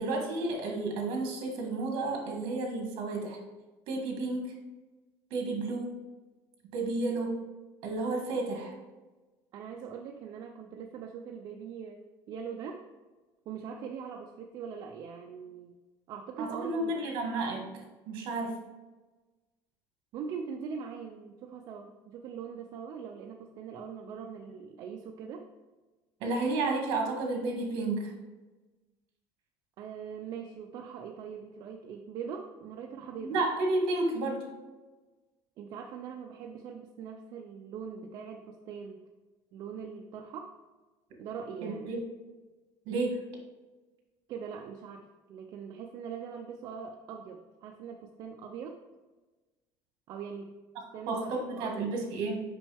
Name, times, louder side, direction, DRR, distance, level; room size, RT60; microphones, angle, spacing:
voice 1, 0.0-3.4 3.9-4.5 5.3-5.9 6.7-7.4 7.8-8.7 16.4-17.7 18.1-18.5 26.2-28.1 33.2-34.4 41.6-42.0 42.8-43.2 51.1-52.4, right 2 dB, 60° right, 1 dB, 1.6 m, -31 dB
voice 2, 9.5-12.0 12.3-12.8 13.5-15.8 16.1-17.0 20.1-25.5 29.8-33.4 35.6-39.0 39.5-40.5 41.2-41.9 44.3-48.8 50.1-50.5 50.9-52.0, right 6 dB, 45° right, 2 dB, 0.4 m, -42 dB
6.0 x 5.3 x 3.4 m, 1.2 s
cardioid pair, 175°, 9 cm